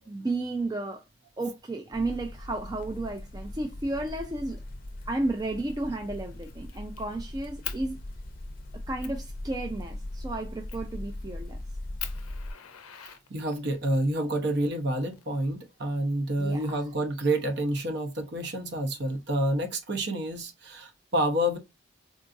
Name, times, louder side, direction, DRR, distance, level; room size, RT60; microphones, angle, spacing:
voice 1, 0.1-1.0 1.4-4.6 5.1-8.0 8.9-11.6 16.4-16.8, right 2 dB, 20° right, 0.3 m, -33 dB
sound 1, 1.9-12.5, left 1 dB, 40° left, 0.5 m, -40 dB
Fire, 5.5-5.7 6.1-7.0 7.6-7.8 8.4-8.5 9.0-9.2 10.7-11.0 11.5-11.6 12.0-13.8 14.8-15.8, left 11 dB, 90° left, 0.5 m, -41 dB
voice 2, 13.3-21.6, right 1 dB, 55° right, 0.7 m, -28 dB
3.8 x 2.4 x 2.5 m
head